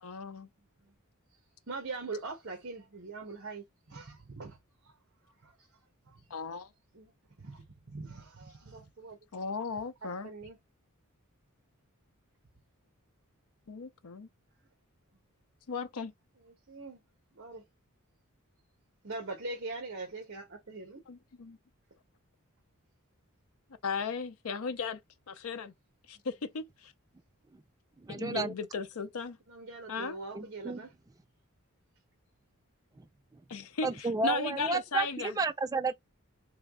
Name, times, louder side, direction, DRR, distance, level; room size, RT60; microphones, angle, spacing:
voice 1, 0.0-0.5 6.3-6.7 9.3-10.3 13.7-14.3 15.7-16.1 21.1-21.6 23.8-25.0 25.3-25.7 26.1-26.9 28.1-29.4 29.9-30.2 33.5-35.3, left 5 dB, 75° left, 0.6 m, -36 dB
voice 2, 1.7-4.6 4.8-4.9 5.4-5.6 6.1-6.2 6.9-7.1 7.4-9.2 10.2-10.6 16.4-17.0 17.3-17.6 19.0-21.0 29.5-30.9, right 3 dB, 55° right, 1.1 m, -42 dB
voice 3, 28.0-28.5 30.3-30.8 33.0-33.1 33.8-35.9, right 3 dB, 15° right, 0.3 m, -32 dB
3.5 x 3.1 x 3.6 m
head